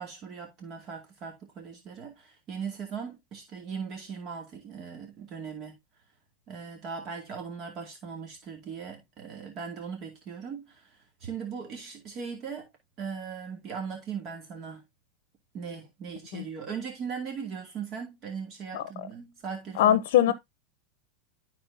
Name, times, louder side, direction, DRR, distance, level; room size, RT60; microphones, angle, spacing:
voice 1, 0.0-5.8 6.5-12.7 13.0-14.8 15.5-20.3, right 6 dB, 40° right, 2.2 m, -39 dB
voice 2, 19.8-20.3, left 11 dB, 70° left, 0.7 m, -21 dB
12.5 x 4.3 x 2.6 m
supercardioid pair, 140°, 0 cm